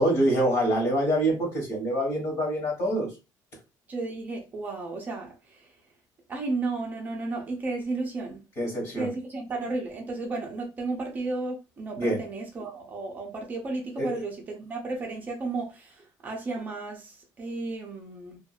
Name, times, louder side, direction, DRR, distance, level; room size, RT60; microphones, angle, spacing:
voice 1, 0.0-3.1 8.6-9.1 12.0-12.2 14.0-14.2, right 1 dB, 45° left, 1.7 m, -25 dB
voice 2, 3.9-5.7 6.3-8.4 9.0-18.4, right 3 dB, 25° right, 0.6 m, -33 dB
2.8 x 2.5 x 2.4 m
cardioid pair, 180°, 7 cm